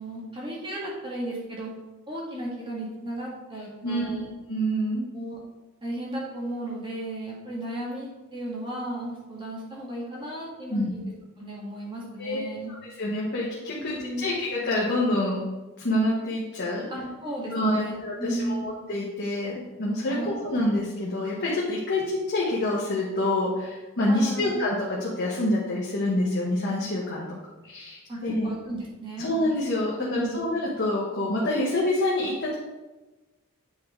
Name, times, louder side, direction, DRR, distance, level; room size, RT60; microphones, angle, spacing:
voice 1, 0.0-1.7 2.1-4.3 5.1-5.4 5.8-11.0 11.4-12.7 13.7-14.3 16.9-18.9 20.1-20.5 24.1-24.6 28.1-28.2 28.4-29.3 30.0-30.4, right 1 dB, 25° right, -5 dB, 1.9 m, -34 dB
voice 2, 3.8-4.2 4.5-5.1 10.7-10.9 12.2-12.5 13.0-15.4 15.8-16.8 17.5-27.3 27.6-28.5 29.2-32.6, left 1 dB, 50° left, -4 dB, 1.2 m, -27 dB
8.7 x 4.7 x 3.7 m, 1.1 s
head